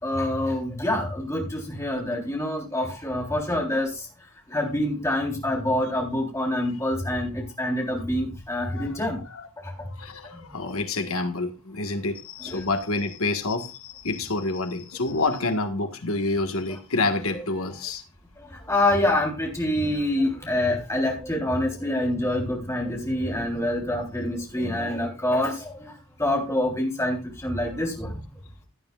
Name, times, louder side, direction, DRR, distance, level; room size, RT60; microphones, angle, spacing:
voice 1, 0.0-3.9 4.5-9.2 12.4-12.6 17.3-17.4 18.7-25.9 26.2-27.2 27.4-28.1, left 1 dB, 15° left, 3.7 m, -26 dB
voice 2, 8.7-9.5 9.8-18.0, left 3 dB, 75° left, 1.6 m, -28 dB
16.5 x 9.6 x 2.4 m
head